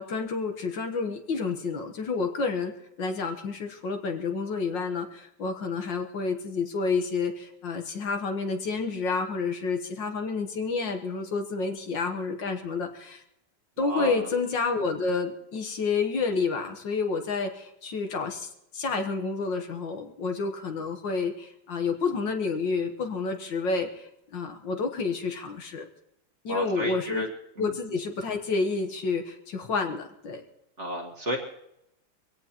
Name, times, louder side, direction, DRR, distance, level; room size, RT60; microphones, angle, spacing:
voice 1, 0.0-2.7 3.0-13.2 13.8-25.9 26.4-27.3 27.6-30.4, left 4 dB, 60° left, 5 dB, 1.8 m, -29 dB
voice 2, 13.8-14.3 26.5-27.3 27.6-27.8 30.8-31.4, equal, 35° right, 1 dB, 1.7 m, -32 dB
23.0 x 16.5 x 2.9 m, 0.81 s
omnidirectional pair, 2.3 m